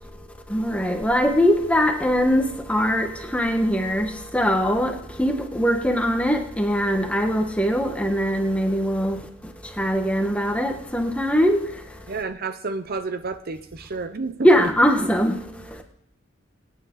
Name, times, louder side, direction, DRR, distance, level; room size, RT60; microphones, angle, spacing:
voice 1, 0.5-12.2 14.4-15.8, equal, 5° left, 1.4 m, -22 dB
voice 2, 12.1-14.7, right 3 dB, 55° right, 0.7 m, -30 dB
23.5 x 9.5 x 3.9 m
head